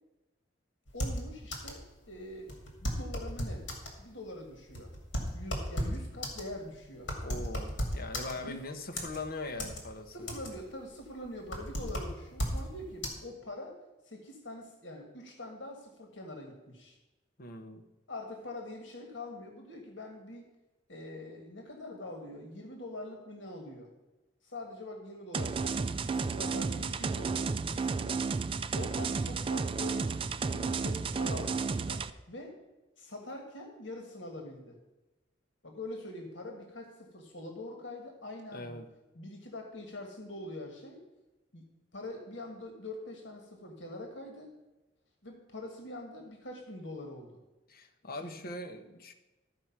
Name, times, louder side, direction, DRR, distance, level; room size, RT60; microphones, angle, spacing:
voice 1, 0.9-2.5 2.8-3.7 4.0-4.9 5.3-7.1 8.4-8.6 10.1-13.8 14.0-17.0 18.1-20.5 20.9-23.9 24.4-28.2 28.7-30.0 30.4-32.5 33.0-34.8 35.6-38.8 39.1-41.0 41.5-44.5 45.2-47.4 48.2-48.4, left 1 dB, 90° left, 2 dB, 1.6 m, -44 dB
sound 1, 0.9-1.9 2.1-2.2 2.5-4.0 4.5-8.6 9.0-9.8 10.1-10.7 11.0-12.7 13.0-13.1, equal, 75° left, 2.3 m, -35 dB
voice 2, 7.2-10.3 17.4-17.8 38.5-38.9 47.7-49.1, left 2 dB, 55° left, 5 dB, 0.9 m, -41 dB
sound 2, 25.3-32.1, right 4 dB, 30° right, 0.3 m, -32 dB
13.5 x 4.7 x 5.8 m, 1.1 s
head